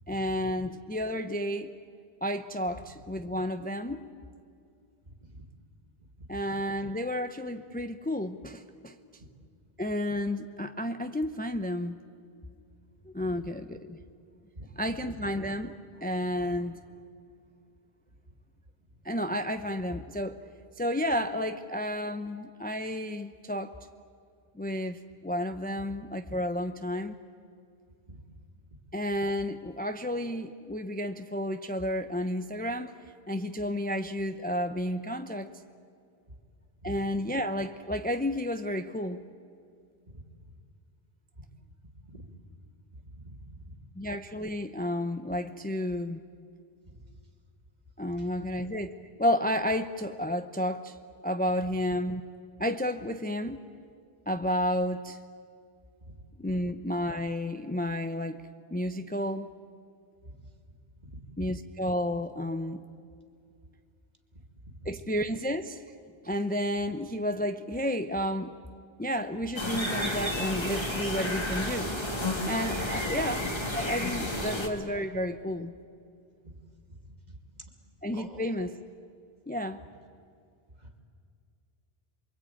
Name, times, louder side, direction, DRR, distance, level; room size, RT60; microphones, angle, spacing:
voice 1, 0.1-1.7 2.2-4.0 6.3-8.9 9.8-12.0 13.1-14.0 14.7-16.8 19.0-20.4 20.8-23.7 24.5-27.1 28.9-32.9 33.3-35.5 36.8-39.2 44.0-46.2 48.0-48.9 49.2-51.0 51.2-52.2 52.6-53.6 54.3-55.2 56.4-59.5 61.4-62.9 64.8-65.8 66.2-68.6 69.0-71.9 72.4-75.7 78.0-78.8 79.5-79.8, equal, 10° left, 8 dB, 0.7 m, -31 dB
voice 2, 5.1-5.4 14.5-14.6 28.1-28.2 36.9-37.0 40.1-40.2 42.1-42.3 43.0-43.7 46.9-47.0 48.1-48.3 56.1-56.2 60.2-60.3 61.0-61.2 64.6-64.8 76.9-77.1 77.6-77.7 78.1-78.5 80.8-81.0, right 1 dB, 45° right, 4 dB, 2.6 m, -47 dB
sound 1, 69.6-74.7, left 1 dB, 25° left, 2.4 m, -31 dB
28.5 x 23.5 x 9.0 m, 2.3 s
omnidirectional pair, 1.0 m